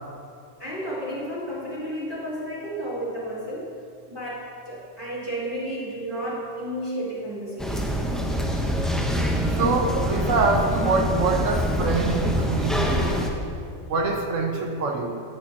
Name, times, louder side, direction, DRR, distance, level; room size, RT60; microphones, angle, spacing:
voice 1, 0.6-3.7 4.1-8.0, equal, 20° right, -8 dB, 1.6 m, -32 dB
sound 1, 7.6-13.3, equal, ahead, 0.6 m, -25 dB
voice 2, 9.5-13.3 13.9-15.2, right 3 dB, 85° right, 3 dB, 1.3 m, -25 dB
15.0 x 6.4 x 2.9 m, 2.3 s
omnidirectional pair, 1.3 m